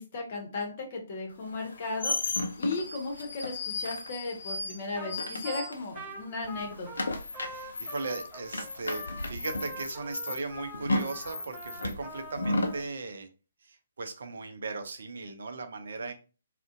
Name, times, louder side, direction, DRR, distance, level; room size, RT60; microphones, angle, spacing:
voice 1, 0.0-2.2 2.6-6.9, left 3 dB, 40° left, 1 dB, 0.8 m, -36 dB
sound 1, 1.5-6.2 6.4-12.8, left 2 dB, 70° left, 0.4 m, -34 dB
Trumpet, 5.0-5.2 5.4-12.8, equal, 15° right, 0.6 m, -44 dB
voice 2, 7.4-13.3 13.6-16.1, right 3 dB, 60° right, 8 dB, 0.5 m, -38 dB
2.5 x 2.1 x 2.4 m, 0.34 s
figure-of-eight pair, 130°, 0 cm